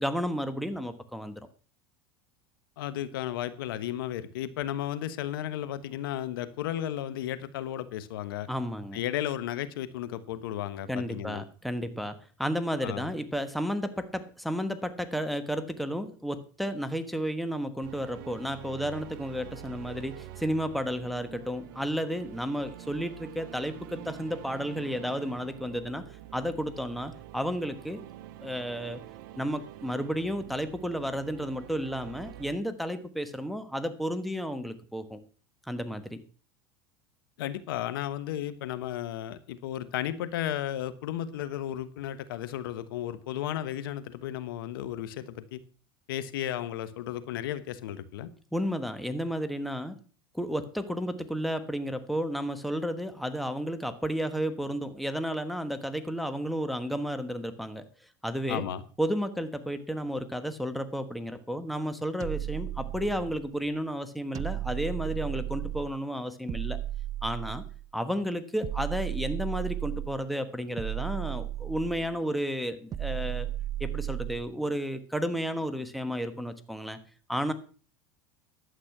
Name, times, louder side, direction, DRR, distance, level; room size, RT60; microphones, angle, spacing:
voice 1, 0.0-1.4 8.5-9.0 10.9-26.0 26.3-28.0 28.4-29.0 29.4-35.2 35.7-36.2 48.5-49.9 50.3-57.8 58.2-58.6 59.0-66.8 67.2-67.6 67.9-73.5 73.8-77.0 77.3-77.5, equal, ahead, 9 dB, 1.3 m, -32 dB
voice 2, 2.8-8.5 8.9-11.4 12.8-13.1 37.4-45.6 46.1-48.3 58.5-58.8, left 11 dB, 85° left, 13 dB, 1.2 m, -34 dB
sound 1, 17.8-32.6, right 13 dB, 70° right, 0.9 m, -46 dB
sound 2, 62.2-63.5 64.3-66.0 66.5-67.9 68.6-70.2 70.8-72.2 72.9-74.5, right 13 dB, 30° right, 0.6 m, -34 dB
11.5 x 8.3 x 5.9 m, 0.39 s
supercardioid pair, 115°, 12 cm